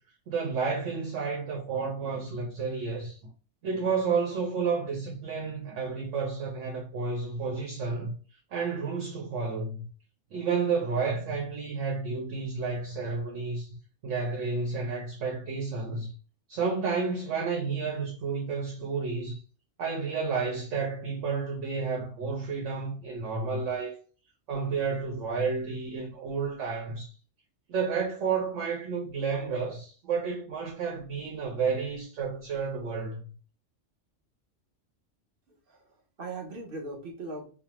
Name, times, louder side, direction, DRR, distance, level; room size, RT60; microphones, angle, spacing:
voice 1, 0.3-3.2 3.6-8.1 8.5-9.9 10.3-13.8 14.0-16.1 16.5-19.4 19.8-24.0 24.5-27.1 27.7-33.3, right 5 dB, 85° right, 1.1 m, -31 dB
voice 2, 35.5-37.4, right 2 dB, 50° right, 1.1 m, -40 dB
3.2 x 2.0 x 2.9 m
omnidirectional pair, 1.2 m